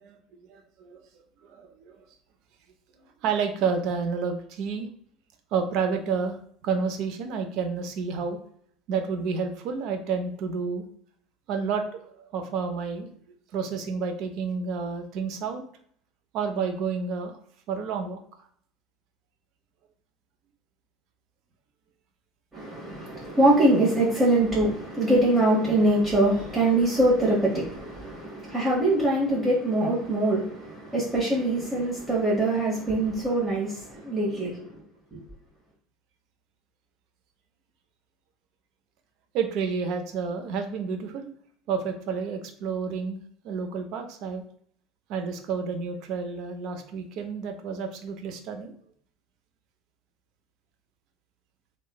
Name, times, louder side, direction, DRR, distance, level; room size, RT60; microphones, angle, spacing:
voice 1, 0.0-1.0 1.4-2.0 3.2-4.9 5.5-6.4 6.6-8.4 8.9-10.9 11.5-13.1 13.5-15.6 16.3-17.4 17.7-18.2 39.3-41.3 41.7-43.2 43.4-44.4 45.1-48.7, right 5 dB, 60° right, 0.5 m, -30 dB
voice 2, 22.5-34.7 35.1-35.2, right 1 dB, 20° right, 1.0 m, -23 dB
3.0 x 2.1 x 2.2 m
hypercardioid pair, 65°, 0 cm